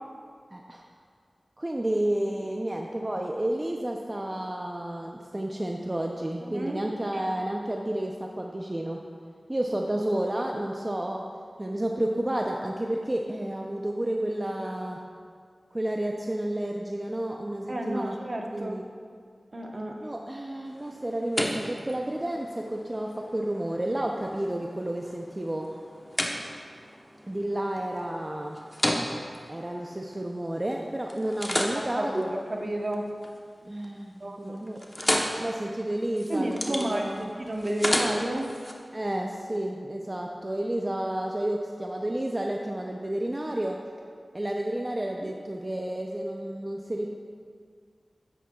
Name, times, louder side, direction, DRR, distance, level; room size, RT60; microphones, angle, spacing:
voice 1, 0.5-0.8 1.6-9.0 9.5-11.3 11.6-15.0 15.7-18.2 18.5-18.8 20.0-25.7 27.3-28.6 29.5-32.3 33.6-34.8 35.4-37.3 38.9-43.8 44.3-47.1, right 1 dB, 30° right, 1 dB, 0.6 m, -31 dB
voice 2, 6.4-6.8 17.7-18.8 19.5-20.0 31.7-32.2 32.5-33.1 34.2-34.6 36.3-38.5, right 1 dB, 50° right, 1 dB, 1.0 m, -31 dB
sound 1, 20.7-30.7 31.1-33.4 33.7-34.2 34.4-38.7, left 1 dB, 20° left, 1.0 m, -34 dB
9.7 x 9.1 x 2.4 m, 2.1 s
cardioid pair, 40°, 0 cm